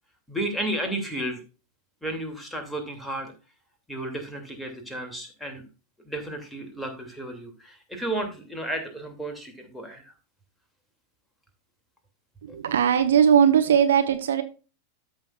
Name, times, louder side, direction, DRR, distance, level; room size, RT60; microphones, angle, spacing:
voice 1, 0.3-1.4 2.0-3.3 3.9-5.7 6.0-10.0 12.5-12.6, right 1 dB, ahead, 2 dB, 2.6 m, -33 dB
voice 2, 12.4-14.4, right 8 dB, 65° right, 8 dB, 0.9 m, -19 dB
13.5 x 6.3 x 2.4 m, 0.33 s
figure-of-eight pair, 90°, 0 cm